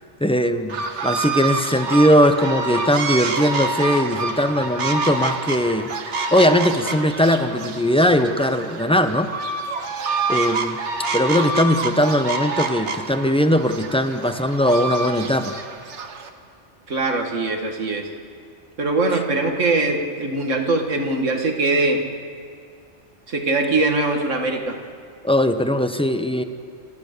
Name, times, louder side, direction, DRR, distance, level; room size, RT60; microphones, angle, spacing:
voice 1, 0.2-9.3 10.3-10.8 11.1-15.6 25.2-26.4, equal, 5° left, 8 dB, 0.7 m, -19 dB
sound 1, 0.7-16.3, right 3 dB, 70° right, 1.5 m, -27 dB
voice 2, 16.9-18.1 18.8-22.0 23.3-24.8, right 2 dB, 85° right, 3 dB, 2.2 m, -22 dB
27.5 x 15.0 x 6.8 m, 2.2 s
omnidirectional pair, 1.2 m